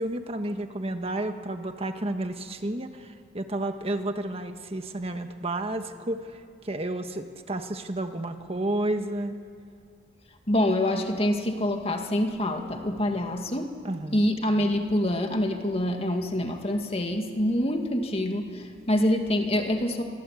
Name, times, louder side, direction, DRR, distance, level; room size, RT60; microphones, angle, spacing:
voice 1, 0.0-9.4 13.8-14.2, right 1 dB, 35° right, 7 dB, 1.4 m, -31 dB
voice 2, 10.5-13.8 14.1-20.0, left 1 dB, 35° left, 4 dB, 2.2 m, -26 dB
26.0 x 24.0 x 8.5 m, 2.5 s
head